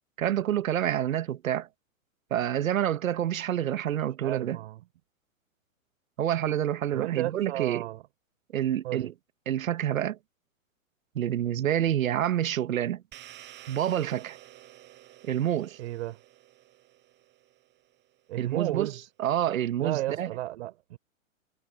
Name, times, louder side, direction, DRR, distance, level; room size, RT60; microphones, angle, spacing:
voice 1, 0.2-1.7 2.3-4.6 6.2-7.9 8.5-9.1 9.5-10.2 11.1-13.0 13.7-14.4 15.2-15.8 18.4-18.9 19.2-20.3, right 11 dB, 75° right, 1.2 m, -28 dB
voice 2, 4.2-4.8 6.9-8.0 8.8-9.1 15.8-16.2 18.3-19.0 19.8-21.0, right 16 dB, 55° right, 3.5 m, -33 dB
sound 1, 13.1-17.8, right 14 dB, 25° right, 6.0 m, -51 dB
hypercardioid pair, 135°, 41 cm